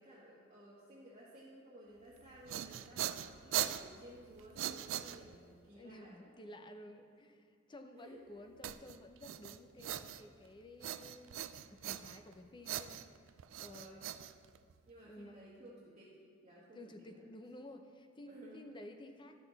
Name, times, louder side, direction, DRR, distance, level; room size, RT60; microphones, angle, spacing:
voice 1, 0.0-6.2 7.9-8.2 13.6-14.1 14.8-16.1 16.4-16.8 17.1-17.3 18.2-18.6, right 1 dB, 30° right, -8 dB, 1.4 m, -56 dB
sound 1, 2.2-5.6 8.6-10.5 10.8-12.3 12.6-14.9, right 12 dB, 70° right, 0.3 m, -41 dB
voice 2, 5.8-13.0 13.6-14.1 15.1-15.8 16.7-19.4, left 1 dB, 25° left, 6 dB, 0.6 m, -53 dB
12.5 x 6.0 x 4.0 m, 2.2 s
head